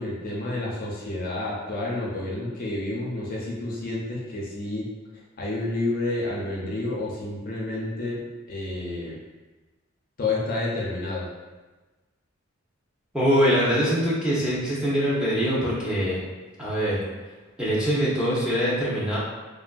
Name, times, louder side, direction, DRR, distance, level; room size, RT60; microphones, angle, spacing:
voice 1, 0.0-4.9 5.4-9.2 10.2-11.3, left 2 dB, 45° left, -4 dB, 0.5 m, -30 dB
voice 2, 13.1-16.2 16.6-17.0 17.6-19.2, equal, 5° right, -9 dB, 0.6 m, -23 dB
3.2 x 2.4 x 2.2 m, 1.2 s
head